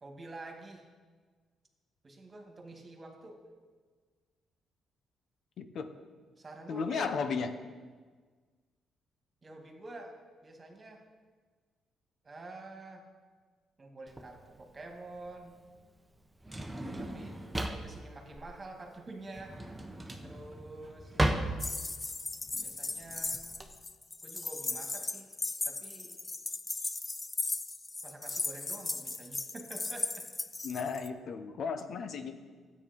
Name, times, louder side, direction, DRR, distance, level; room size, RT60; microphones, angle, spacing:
voice 1, 0.0-0.8 2.0-3.4 6.4-7.2 9.4-10.1 10.4-11.0 12.2-13.0 13.8-15.5 17.0-19.6 20.2-21.2 22.6-23.4 24.2-25.3 25.6-26.2 28.0-30.3, right 2 dB, 30° right, 3 dB, 2.2 m, -47 dB
voice 2, 5.6-5.9 6.7-7.5 30.6-32.3, left 5 dB, 65° left, 8 dB, 1.0 m, -34 dB
Drawer open or close, 14.1-23.7, right 1 dB, 10° right, 1.2 m, -36 dB
sound 1, 21.6-31.1, left 3 dB, 20° left, 0.6 m, -37 dB
12.5 x 8.9 x 5.4 m, 1.5 s
cardioid pair, 90°, 0 cm